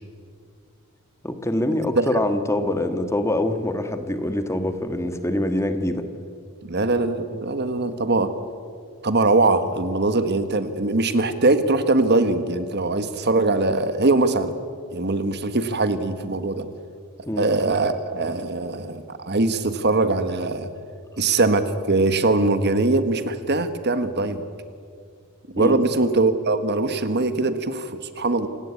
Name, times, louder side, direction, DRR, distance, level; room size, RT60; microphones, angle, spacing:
voice 1, 1.2-6.0 17.2-17.5 25.6-25.8, left 1 dB, 15° left, 8 dB, 1.6 m, -24 dB
voice 2, 6.6-8.3 9.0-14.5 14.9-16.6 17.4-20.7 21.2-24.4 25.5-28.5, right 2 dB, 50° right, 10 dB, 1.6 m, -22 dB
27.5 x 18.0 x 8.7 m, 2.2 s
head